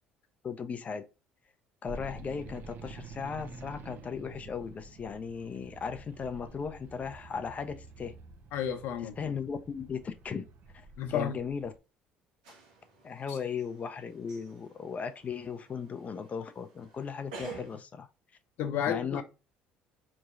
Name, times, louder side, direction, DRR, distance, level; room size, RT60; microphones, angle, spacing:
voice 1, 0.4-1.0 1.8-8.1 9.2-10.4 10.7-11.7 13.0-18.1 18.9-19.2, left 6 dB, 35° left, 0.5 m, -37 dB
sound 1, 1.8-11.8, right 3 dB, 55° right, 0.6 m, -49 dB
voice 2, 8.5-9.2 11.0-11.3 13.3-13.4 18.6-19.2, left 9 dB, 65° left, 0.8 m, -31 dB
sound 2, 12.4-17.8, right 4 dB, 85° right, 1.2 m, -50 dB
4.4 x 3.1 x 2.5 m
hypercardioid pair, 70°, 4 cm